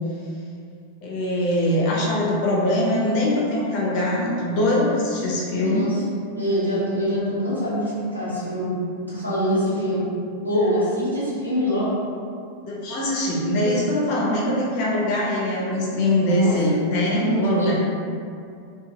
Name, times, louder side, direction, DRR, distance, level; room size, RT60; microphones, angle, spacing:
voice 1, 1.0-5.9 12.6-17.7, left 1 dB, 45° left, -4 dB, 0.7 m, -22 dB
voice 2, 5.6-6.0 6.3-8.7 9.1-10.1 10.4-11.9 16.1-17.7, equal, 85° right, -10 dB, 0.9 m, -24 dB
2.7 x 2.3 x 2.8 m, 2.4 s
figure-of-eight pair, 90°, 0 cm